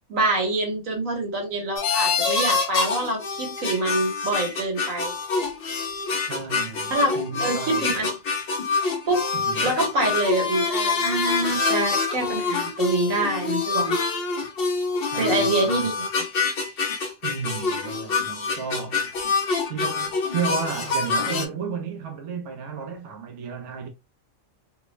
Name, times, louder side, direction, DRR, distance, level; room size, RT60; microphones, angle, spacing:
voice 1, 0.1-5.1 6.9-8.1 9.1-9.3 9.6-14.0 15.2-16.0, right 2 dB, 85° right, 1.5 m, -25 dB
sound 1, 1.8-21.4, left 4 dB, 55° left, 0.7 m, -26 dB
voice 2, 6.2-7.9 9.3-9.8 15.1-15.9 17.2-19.1 19.7-23.9, right 6 dB, 65° right, 0.9 m, -33 dB
3.2 x 2.0 x 3.0 m
omnidirectional pair, 1.3 m